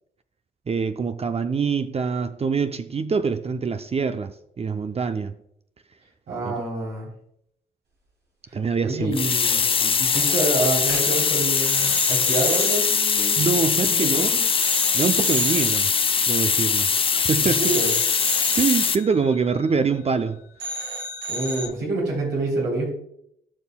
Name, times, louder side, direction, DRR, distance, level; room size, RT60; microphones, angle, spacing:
voice 1, 0.7-5.4 6.4-6.6 8.5-9.1 9.7-9.8 13.4-14.3 14.9-15.9 16.3-17.8 18.5-20.4, right 5 dB, 35° right, 0.5 m, -25 dB
voice 2, 6.3-7.1 8.8-14.4 17.4-17.9 21.3-22.9, right 2 dB, 90° right, 3.2 m, -27 dB
sound 1, 9.1-19.0, left 6 dB, 30° left, 0.4 m, -22 dB
sound 2, 9.4-9.9 10.1-10.4 10.8-14.2 14.6-17.2 17.6-20.3 20.6-21.7, right 1 dB, 75° right, 2.5 m, -34 dB
13.5 x 5.5 x 2.2 m
supercardioid pair, 55°, 18 cm